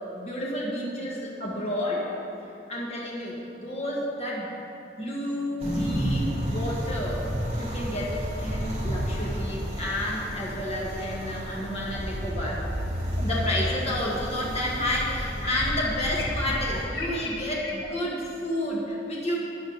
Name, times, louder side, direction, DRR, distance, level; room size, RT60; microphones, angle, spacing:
voice 1, 0.1-2.1 2.7-4.5 5.0-7.2 7.6-12.7 13.2-19.4, left 1 dB, 35° left, -4 dB, 1.6 m, -30 dB
sound 1, 5.6-16.8, equal, 35° right, 2.3 m, -32 dB
sound 2, 11.9-12.0 12.6-13.6 16.2-17.9, left 1 dB, 85° left, 1.9 m, -31 dB
12.5 x 9.4 x 4.0 m, 2.8 s
head